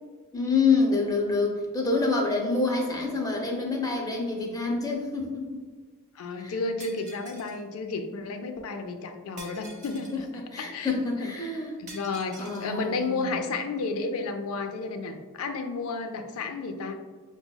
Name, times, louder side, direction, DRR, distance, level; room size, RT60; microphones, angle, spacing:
voice 1, 0.3-5.6 6.4-6.6 10.1-11.8 12.4-13.4, left 3 dB, 15° left, -1 dB, 0.5 m, -27 dB
voice 2, 6.2-10.3 10.6-10.9 11.2-11.3 11.8-17.0, left 3 dB, 75° left, 6 dB, 0.4 m, -32 dB
Shatter, 6.8-7.6 9.4-10.2 11.9-12.7, right 2 dB, 35° right, 0.5 m, -46 dB
5.8 x 2.0 x 2.2 m, 1.4 s
head